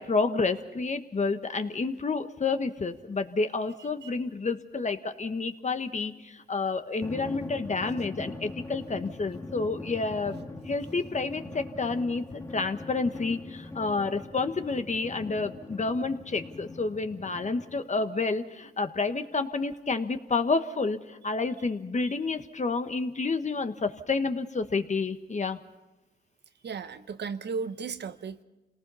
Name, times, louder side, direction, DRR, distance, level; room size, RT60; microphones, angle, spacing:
voice 1, 0.0-10.4 10.7-25.6, left 4 dB, 40° left, 8 dB, 1.4 m, -29 dB
Drum, 7.0-18.1, left 2 dB, 15° left, 1.7 m, -41 dB
voice 2, 26.6-28.4, right 5 dB, 65° right, 11 dB, 1.0 m, -35 dB
27.0 x 18.5 x 5.6 m, 1.0 s
cardioid pair, 65°, 19 cm